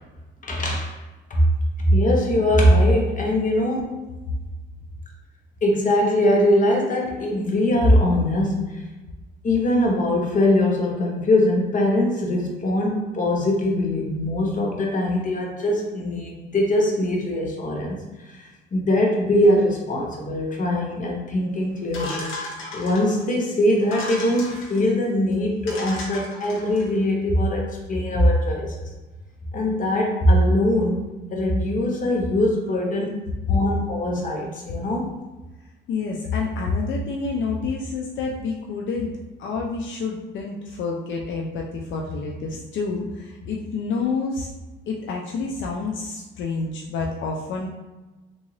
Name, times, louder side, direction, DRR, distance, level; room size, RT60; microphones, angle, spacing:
voice 1, 0.4-0.9 1.3-1.5 1.8-4.1 5.6-8.8 9.4-18.0 18.3-22.3 22.7-28.8 29.5-31.0 31.3-35.2, left 1 dB, 40° left, -1 dB, 0.9 m, -21 dB
sound 1, 21.9-23.2 23.8-24.8 25.3-25.4 25.7-26.9, left 2 dB, 90° left, 0.9 m, -35 dB
voice 2, 35.9-39.1 39.4-44.5 44.9-47.7, left 4 dB, 70° left, -1 dB, 0.5 m, -28 dB
3.5 x 2.6 x 3.1 m, 1.1 s
cardioid pair, 90°, 20 cm